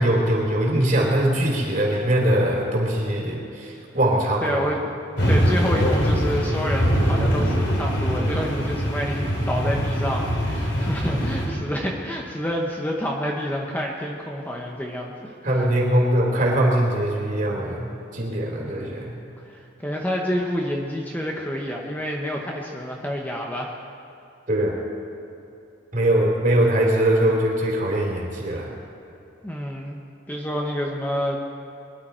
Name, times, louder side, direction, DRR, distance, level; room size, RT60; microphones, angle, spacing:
voice 1, 0.0-4.7 15.4-17.9 18.1-19.2 24.5-24.7 25.9-28.7, right 1 dB, 45° right, -2 dB, 3.2 m, -21 dB
voice 2, 4.4-4.8 5.3-15.3 18.6-19.1 19.4-23.7 29.4-30.0 30.3-31.4, equal, 10° left, -1 dB, 1.0 m, -28 dB
sound 1, 5.2-11.5, equal, 70° left, 3.3 m, -22 dB
22.5 x 11.5 x 4.4 m, 2.8 s
head